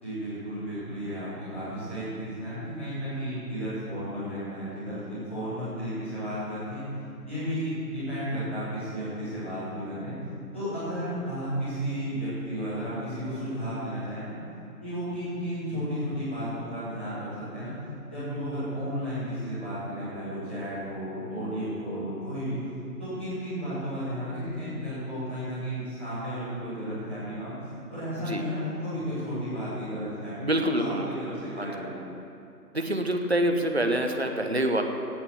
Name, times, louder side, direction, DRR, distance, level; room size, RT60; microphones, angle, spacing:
voice 1, 0.0-6.8 7.2-10.1 10.5-14.3 14.8-17.7 18.1-22.6 23.0-27.5 27.9-32.0, equal, 10° left, -17 dB, 2.9 m, -33 dB
voice 2, 30.4-31.1 31.6-31.7 32.7-34.8, right 1 dB, 40° right, 5 dB, 0.8 m, -26 dB
17.0 x 7.0 x 7.1 m, 2.7 s
figure-of-eight pair, 175°, 48 cm